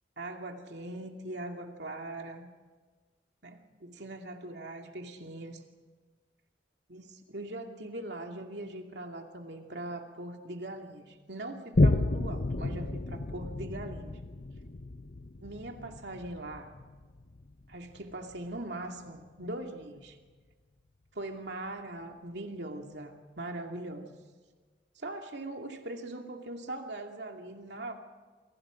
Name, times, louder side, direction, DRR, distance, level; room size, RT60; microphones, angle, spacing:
voice 1, 0.2-2.5 3.4-5.6 6.9-14.2 15.4-16.7 17.7-20.2 21.1-24.2 25.0-27.9, right 2 dB, 80° right, 3 dB, 2.5 m, -41 dB
Boom, 11.7-18.7 19.2-19.3, left 2 dB, 55° left, 0.8 m, -31 dB
28.5 x 25.0 x 5.2 m, 1.4 s
head